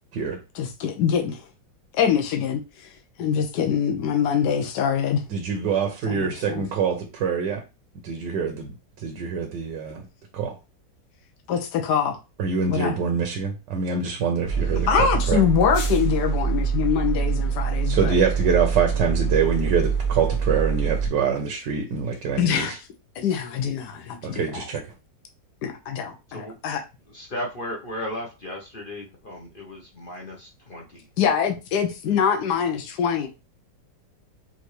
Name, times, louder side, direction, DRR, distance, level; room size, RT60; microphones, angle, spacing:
voice 1, 0.5-1.4 1.9-2.6 3.2-5.2 6.1-6.6 11.5-12.2 12.7-12.9 14.9-18.2 22.4-22.8 23.2-24.6 25.6-26.8 31.2-33.3, left 7 dB, 70° left, 1.4 m, -24 dB
voice 2, 5.3-7.6 8.0-8.7 9.0-10.0 10.3-10.6 12.4-15.4 17.9-22.8 24.2-24.8, right 6 dB, 75° right, 1.4 m, -25 dB
sound 1, 14.5-21.1, right 6 dB, 85° left, 1.7 m, -25 dB
voice 3, 27.1-31.0, left 1 dB, 50° left, 0.6 m, -35 dB
5.5 x 2.6 x 3.1 m
omnidirectional pair, 2.0 m